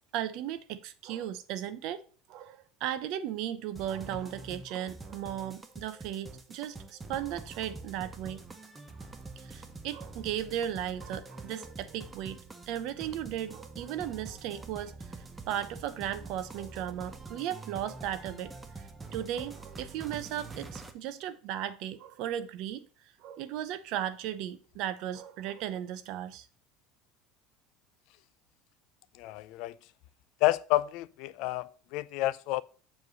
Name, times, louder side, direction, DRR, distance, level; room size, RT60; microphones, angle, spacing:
voice 1, 0.1-8.4 9.4-12.4 12.7-15.0 15.5-18.5 19.1-22.9 23.2-26.5, right 11 dB, 55° right, 0.6 m, -36 dB
sound 1, 3.7-20.9, right 3 dB, 10° right, 0.6 m, -46 dB
voice 2, 29.2-29.8 30.4-32.6, left 17 dB, 55° left, 0.4 m, -29 dB
7.2 x 3.2 x 6.2 m
cardioid pair, 165°, 0 cm